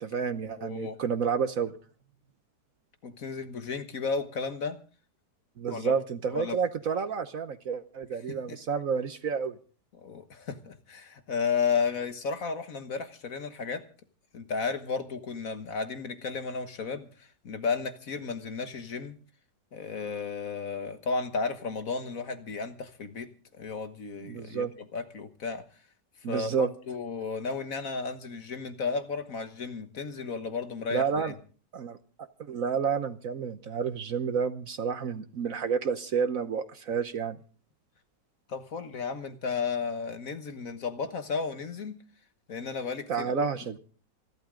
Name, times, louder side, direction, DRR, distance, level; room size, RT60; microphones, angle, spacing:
voice 1, 0.0-1.7 5.6-9.6 24.2-24.7 26.2-26.7 30.9-31.3 31.7-37.4 43.1-43.8, right 6 dB, 55° right, 11 dB, 1.2 m, -30 dB
voice 2, 0.6-1.0 3.0-4.8 5.7-5.9 6.3-6.6 8.3-8.6 10.0-13.8 14.3-19.2 19.7-25.6 26.3-31.4 38.5-42.0 42.5-43.4, left 5 dB, 50° left, 9 dB, 1.6 m, -33 dB
27.0 x 12.0 x 3.8 m, 0.39 s
omnidirectional pair, 1.9 m